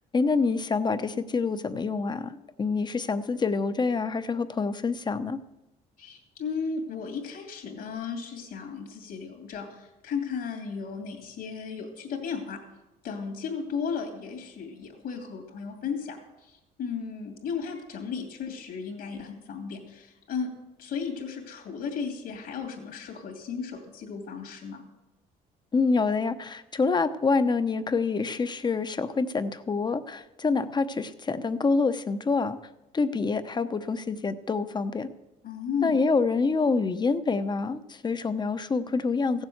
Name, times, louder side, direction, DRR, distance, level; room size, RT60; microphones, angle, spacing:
voice 1, 0.1-5.4 25.7-32.6 32.9-35.1 35.8-39.4, left 4 dB, 25° left, 11 dB, 0.8 m, -26 dB
voice 2, 6.0-12.6 13.0-20.5 20.8-24.8 35.4-36.1, left 6 dB, 70° left, 2 dB, 2.6 m, -35 dB
15.5 x 7.4 x 7.9 m, 0.98 s
cardioid pair, 110°, 17 cm